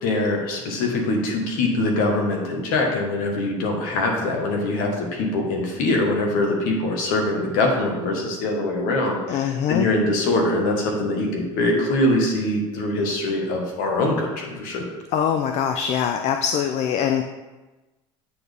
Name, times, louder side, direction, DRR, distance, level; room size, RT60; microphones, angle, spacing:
voice 1, 0.0-14.8, left 2 dB, 65° left, 0 dB, 1.5 m, -23 dB
voice 2, 9.3-9.9 15.1-17.2, left 8 dB, 45° left, 6 dB, 0.4 m, -23 dB
8.4 x 4.1 x 3.5 m, 1.2 s
hypercardioid pair, 90°, 16 cm